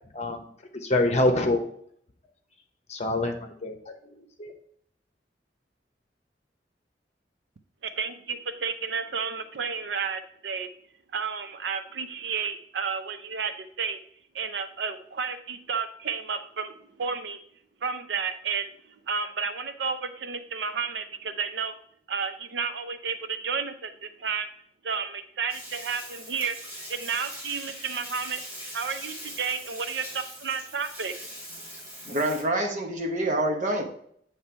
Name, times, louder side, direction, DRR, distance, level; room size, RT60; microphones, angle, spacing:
voice 1, 0.8-1.6 2.9-3.8 4.4-4.5, left 1 dB, 40° left, 4 dB, 0.9 m, -25 dB
voice 2, 8.0-10.7 11.1-13.5 13.8-14.0 14.3-17.4 17.8-18.7 19.1-21.7 22.1-24.5 24.8-26.6 26.9-28.4 28.7-31.2, right 5 dB, 75° right, 9 dB, 0.6 m, -31 dB
Bathtub (filling or washing), 25.5-32.4, equal, 10° right, 2.9 m, -41 dB
voice 3, 32.0-33.8, right 1 dB, 45° right, 2 dB, 1.1 m, -26 dB
8.0 x 3.3 x 4.4 m, 0.65 s
head